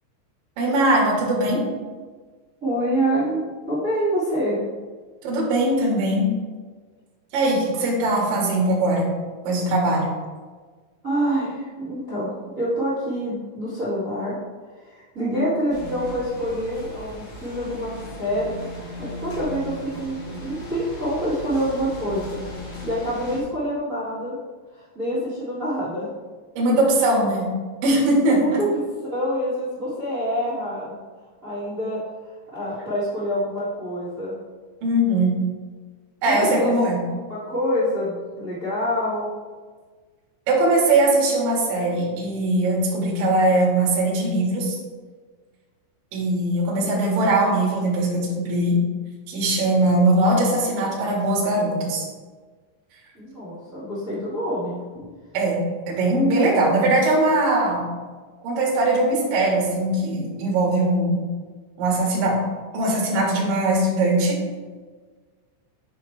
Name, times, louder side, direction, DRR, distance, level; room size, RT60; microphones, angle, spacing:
voice 1, 0.6-1.6 5.2-6.3 7.3-9.1 9.4-10.1 15.2-15.5 26.5-27.5 27.8-28.6 34.8-35.3 36.2-37.0 40.5-44.8 46.1-48.8 49.3-52.1 55.3-55.6 55.9-57.8 58.4-61.3 61.8-62.4 62.7-64.4, right 1 dB, 55° right, -3 dB, 2.9 m, -20 dB
voice 2, 2.6-3.4 3.7-4.6 11.0-14.4 14.8-18.7 19.0-22.4 22.8-24.3 24.7-26.1 28.3-28.8 29.1-31.0 31.4-32.0 32.5-34.3 36.2-36.7 37.3-39.3 53.1-54.8, equal, 75° right, -11 dB, 0.7 m, -26 dB
sound 1, 15.7-23.4, equal, 55° left, 1.8 m, -37 dB
9.7 x 4.6 x 3.3 m, 1.4 s
omnidirectional pair, 5.8 m